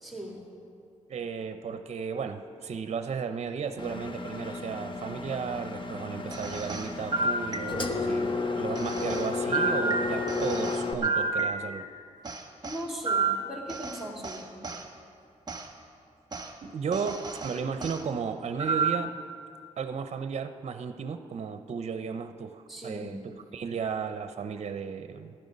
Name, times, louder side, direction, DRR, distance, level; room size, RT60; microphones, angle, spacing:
voice 1, 0.0-0.5 12.6-14.6 22.7-23.1, equal, ahead, -2 dB, 3.4 m, -39 dB
voice 2, 1.1-11.9 16.4-19.1 19.8-25.3, right 6 dB, 60° right, 9 dB, 0.6 m, -34 dB
Engine, 3.8-10.9, left 3 dB, 40° left, 1.1 m, -32 dB
sound 1, 6.3-8.1 8.7-11.9 12.2-14.9 15.5-15.7 16.3-16.5 16.9-18.0 18.6-19.2, right 3 dB, 35° right, 1.3 m, -31 dB
14.5 x 11.5 x 5.3 m, 2.4 s
cardioid pair, 70°, 13 cm